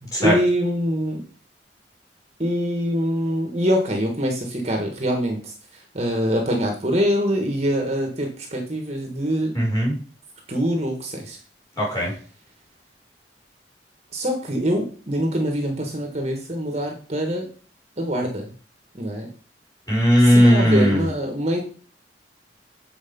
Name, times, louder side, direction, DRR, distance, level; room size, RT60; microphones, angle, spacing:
voice 1, 0.0-1.2 2.4-9.5 10.5-11.4 14.1-17.5 18.0-18.5 19.0-19.3 20.2-21.6, equal, 35° right, 3 dB, 1.4 m, -24 dB
voice 2, 9.5-9.9 11.8-12.1 19.9-21.0, equal, 20° left, -4 dB, 4.5 m, -17 dB
8.1 x 4.8 x 5.3 m, 0.41 s
head